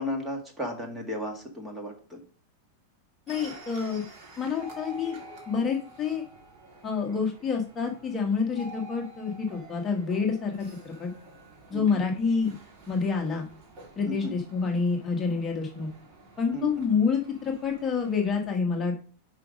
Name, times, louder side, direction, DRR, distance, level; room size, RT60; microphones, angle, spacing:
voice 1, 0.0-2.2 11.7-12.0 14.1-14.4 16.5-16.7, left 1 dB, 10° right, 2 dB, 1.7 m, -34 dB
voice 2, 3.3-4.0 4.4-5.2 5.5-6.2 6.8-11.1 11.7-12.5 12.9-13.5 14.0-15.9 16.4-19.0, left 5 dB, 20° left, 1 dB, 1.3 m, -28 dB
sound 1, 3.3-18.4, right 2 dB, 45° right, 3.1 m, -49 dB
5.7 x 5.1 x 5.0 m, 0.43 s
supercardioid pair, 145°, 0 cm